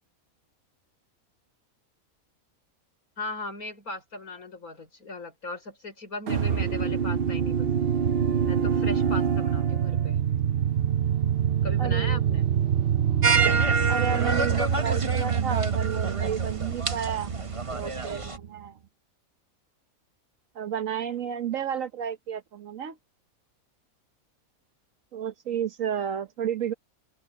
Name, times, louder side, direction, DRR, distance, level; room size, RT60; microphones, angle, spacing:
voice 1, 3.2-7.9 8.5-10.2 11.6-12.4, left 2 dB, 80° left, 5.8 m, -38 dB
sound 1, 6.3-18.5, right 8 dB, 50° right, 0.8 m, -26 dB
voice 2, 11.8-12.2 13.9-17.3 17.7-18.8 20.5-23.0 25.1-26.7, right 8 dB, 65° right, 1.3 m, -32 dB
sound 2, 13.2-18.4, right 4 dB, 25° right, 1.1 m, -28 dB
open air
omnidirectional pair, 1.5 m